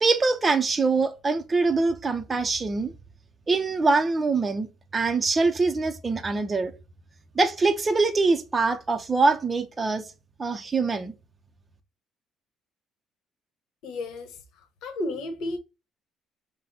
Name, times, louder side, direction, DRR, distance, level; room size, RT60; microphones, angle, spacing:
voice 1, 0.0-2.9 3.5-4.7 4.9-6.7 7.4-10.0 10.4-11.1, right 3 dB, 20° right, 0.5 m, -23 dB
voice 2, 13.8-15.6, left 2 dB, 85° left, 1.0 m, -33 dB
5.8 x 2.1 x 3.9 m
cardioid pair, 155°, 0 cm